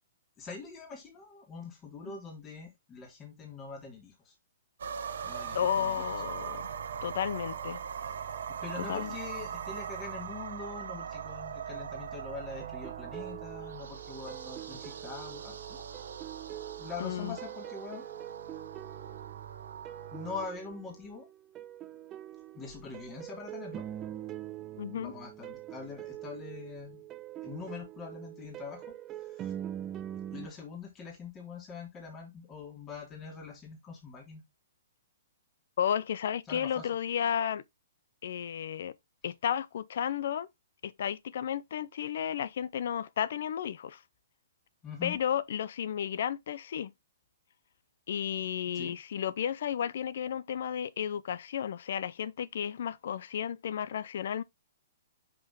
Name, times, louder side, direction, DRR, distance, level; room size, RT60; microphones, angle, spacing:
voice 1, 0.4-4.3 5.2-6.2 8.6-15.8 16.8-18.0 20.1-21.3 22.5-23.8 25.0-27.0 27.4-28.8 29.2-29.5 30.3-34.4 36.4-36.9 39.2-39.3 44.8-45.2 48.7-49.0, left 5 dB, 20° left, 2.6 m, -43 dB
sound 1, 4.8-20.5, right 7 dB, 75° right, 0.9 m, -41 dB
voice 2, 5.5-6.7 7.0-7.8 8.8-9.1 17.0-17.4 24.8-25.1 35.8-37.6 38.2-38.9 39.2-40.5 40.8-44.0 45.0-46.9 48.1-54.4, left 9 dB, 65° left, 0.5 m, -33 dB
sound 2, 12.6-30.5, right 12 dB, 25° right, 0.4 m, -44 dB
5.9 x 4.8 x 3.7 m
hypercardioid pair, 135°, 0 cm